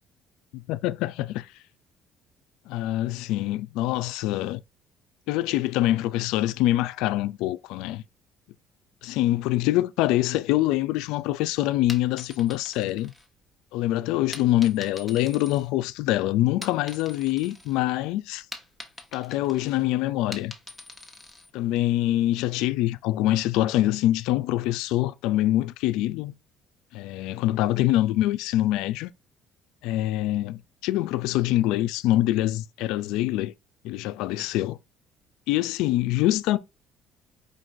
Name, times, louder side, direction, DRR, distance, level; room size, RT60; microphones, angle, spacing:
voice 1, 0.7-1.5 2.7-4.6 5.3-8.0 9.0-13.1 13.7-18.5 19.1-20.5 21.5-26.3 26.9-29.1 29.8-33.5 33.8-34.8 35.5-36.6, left 15 dB, 85° left, 0.3 m, -25 dB
sound 1, 11.9-13.7 14.3-16.1 16.5-17.8 18.1-21.5, left 2 dB, 5° left, 1.0 m, -44 dB
5.1 x 2.5 x 3.8 m
cardioid pair, 100°, 0 cm